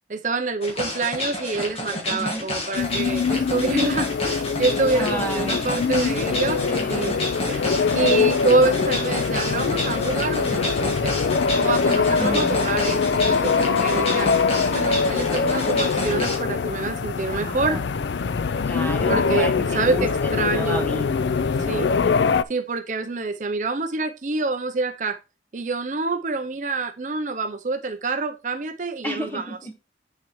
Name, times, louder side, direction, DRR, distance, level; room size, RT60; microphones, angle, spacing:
voice 1, 0.1-7.2 7.5-11.1 11.6-14.3 14.7-17.8 19.1-20.8 21.7-21.9 22.5-25.2 25.5-29.5, right 3 dB, 45° right, 7 dB, 0.6 m, -26 dB
sound 1, 0.6-16.4, left 1 dB, 35° left, 1.9 m, -30 dB
voice 2, 2.1-2.5 4.9-5.8 6.6-7.2 12.2-12.6 17.2-17.8 18.6-21.2 21.6-22.1 29.0-29.7, right 1 dB, 10° left, 3 dB, 1.4 m, -32 dB
sound 2, 2.8-22.4, left 5 dB, 80° left, 0.4 m, -23 dB
8.2 x 6.6 x 3.1 m, 0.29 s
head